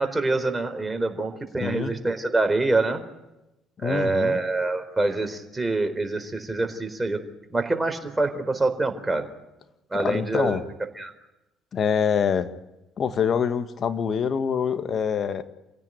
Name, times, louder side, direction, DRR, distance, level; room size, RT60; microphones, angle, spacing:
voice 1, 0.0-3.0 3.8-7.2 7.5-9.3 9.9-10.6 11.0-11.1, right 2 dB, 15° right, 4.1 m, -25 dB
voice 2, 1.6-1.9 3.8-4.4 9.9-10.6 11.7-12.5 13.0-15.4, left 7 dB, 45° left, 1.8 m, -25 dB
28.0 x 16.5 x 9.2 m
figure-of-eight pair, 55°, 0 cm